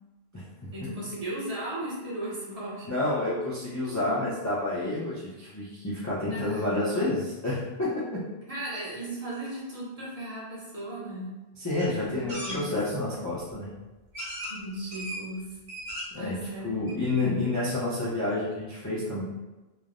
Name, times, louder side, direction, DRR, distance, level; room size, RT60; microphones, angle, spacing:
voice 1, 0.7-3.0 6.3-6.7 8.5-11.3 11.9-12.8 14.5-15.5 16.1-16.8, right 1 dB, 40° right, -7 dB, 0.7 m, -36 dB
voice 2, 2.9-7.9 11.6-13.7 16.1-16.3 16.6-19.2, left 2 dB, 25° left, -9 dB, 0.4 m, -29 dB
sound 1, 11.8-11.9 12.3-12.6 13.5-13.6 14.1-14.6 14.9-15.2 15.6-16.2 16.6-16.7 16.9-17.0, equal, 90° right, 1.3 m, -36 dB
3.1 x 2.0 x 2.4 m, 1.1 s
omnidirectional pair, 1.1 m